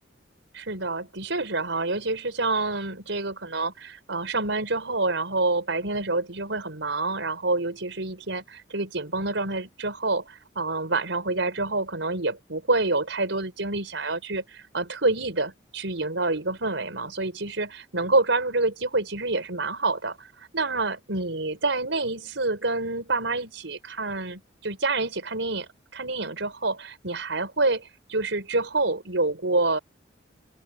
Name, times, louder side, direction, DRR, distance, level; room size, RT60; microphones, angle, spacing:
voice 1, 0.5-29.8, right 2 dB, 80° right, 4.5 m, -27 dB
open air
head